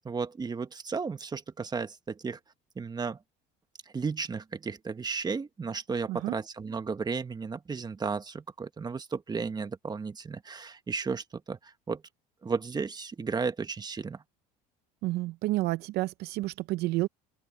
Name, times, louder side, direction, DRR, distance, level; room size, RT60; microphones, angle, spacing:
voice 1, 0.0-2.4 2.7-3.2 3.9-12.0 12.4-14.2, right 5 dB, 25° right, 1.6 m, -34 dB
voice 2, 15.0-17.1, right 18 dB, 65° right, 0.7 m, -30 dB
open air
supercardioid pair, 95°, 18 cm